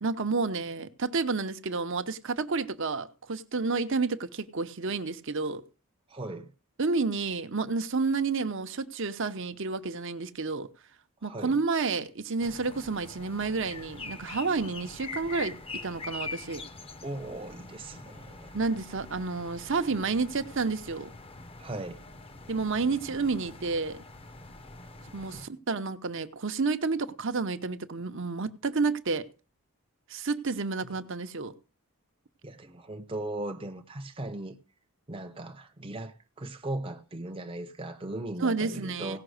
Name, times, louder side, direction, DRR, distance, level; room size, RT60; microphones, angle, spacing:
voice 1, 0.0-5.6 6.8-10.7 11.2-16.6 18.5-21.1 22.5-24.0 25.1-29.3 30.1-31.5 38.4-39.2, right 4 dB, 60° right, 0.8 m, -30 dB
voice 2, 6.1-6.5 11.2-11.5 17.0-18.5 21.6-22.0 25.3-25.5 30.8-30.9 32.4-34.6 35.1-39.2, right 1 dB, 25° right, 0.7 m, -38 dB
sound 1, 12.4-25.5, left 3 dB, 25° left, 0.8 m, -44 dB
17.0 x 5.8 x 6.4 m
head